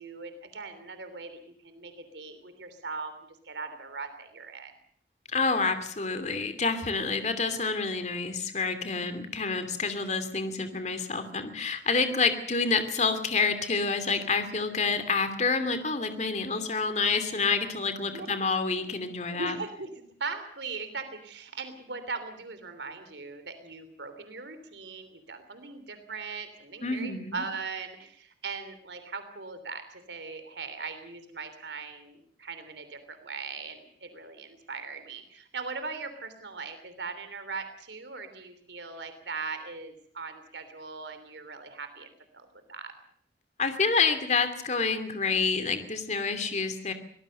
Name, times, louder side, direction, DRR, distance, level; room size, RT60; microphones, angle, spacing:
voice 1, 0.0-4.7 18.0-18.3 18.6-18.9 19.3-19.9 20.2-42.9, right 4 dB, 80° right, 9 dB, 3.2 m, -40 dB
voice 2, 5.3-19.6 26.8-27.4 43.6-46.9, left 4 dB, 40° left, 9 dB, 2.6 m, -28 dB
24.5 x 18.5 x 6.8 m, 0.62 s
head